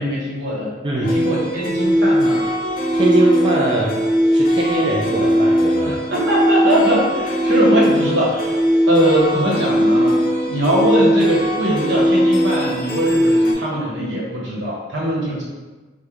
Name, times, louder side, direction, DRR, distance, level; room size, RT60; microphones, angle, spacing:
voice 1, 0.0-2.4 5.9-8.6 8.9-10.1 10.5-15.4, right 1 dB, 70° right, -5 dB, 0.9 m, -21 dB
voice 2, 0.8-1.2 2.9-4.0 4.3-6.0, right 2 dB, 25° right, -5 dB, 0.3 m, -21 dB
sound 1, 1.0-13.5, equal, 50° left, 0.5 m, -18 dB
3.1 x 2.1 x 3.5 m, 1.3 s
head